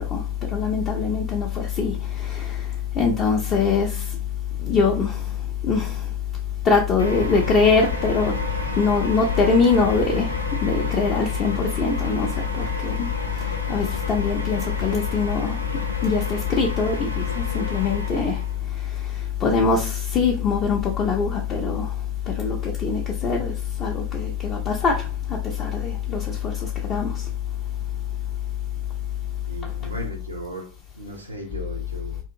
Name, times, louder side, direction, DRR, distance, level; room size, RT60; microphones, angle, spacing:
voice 1, 0.0-4.2 4.6-6.2 6.6-8.4 8.7-27.3 29.6-29.9, left 5 dB, 30° left, 0.5 m, -23 dB
sound 1, 7.0-18.6, left 2 dB, 85° left, 0.5 m, -31 dB
voice 2, 29.5-32.2, right 1 dB, 80° right, 0.6 m, -36 dB
2.6 x 2.4 x 2.6 m
figure-of-eight pair, 90°, 0 cm